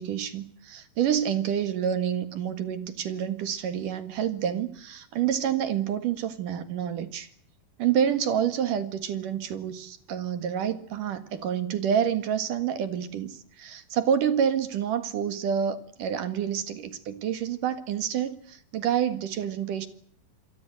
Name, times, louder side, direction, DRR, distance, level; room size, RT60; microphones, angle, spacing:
voice 1, 0.0-7.3 7.8-19.9, right 9 dB, 65° right, 3.1 m, -28 dB
28.0 x 22.5 x 7.6 m
omnidirectional pair, 4.3 m